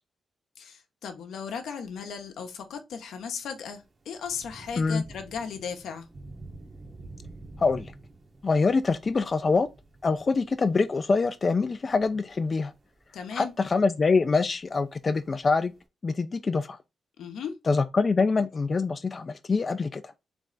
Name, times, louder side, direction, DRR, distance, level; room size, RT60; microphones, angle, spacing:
voice 1, 0.6-6.1 13.1-13.5 17.2-17.6, left 6 dB, 85° left, 0.8 m, -36 dB
Thunder / Rain, 3.4-15.8, right 2 dB, 40° right, 1.1 m, -49 dB
voice 2, 7.6-7.9 8.4-9.7 10.0-12.7 13.3-15.7 16.0-16.8 17.7-20.1, left 4 dB, 35° left, 0.3 m, -25 dB
3.4 x 3.2 x 3.8 m
cardioid pair, 95°, 0 cm